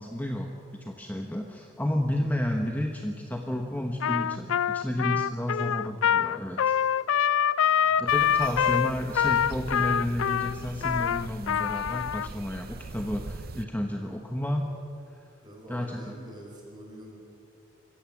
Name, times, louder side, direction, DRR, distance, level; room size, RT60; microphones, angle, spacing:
voice 1, 0.0-6.7 8.0-14.8 15.1-15.2 15.7-16.0, left 1 dB, 10° left, 2 dB, 1.0 m, -31 dB
Trumpet, 4.0-12.3, left 8 dB, 75° left, 0.4 m, -25 dB
sound 1, 8.1-13.6, right 3 dB, 45° right, 0.6 m, -41 dB
sound 2, 8.3-11.4, right 1 dB, 75° right, 3.2 m, -54 dB
voice 2, 14.0-14.5 15.4-17.2, equal, 20° right, 0 dB, 4.8 m, -46 dB
25.5 x 15.0 x 7.3 m, 2.6 s
head